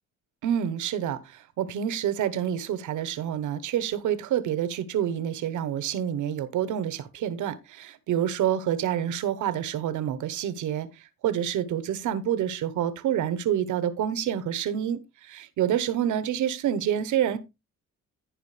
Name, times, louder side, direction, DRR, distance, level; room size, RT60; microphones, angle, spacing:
voice 1, 0.4-10.9 11.2-17.4, right 10 dB, 80° right, 1.1 m, -28 dB
15.0 x 5.1 x 3.3 m
cardioid pair, 90°, 30 cm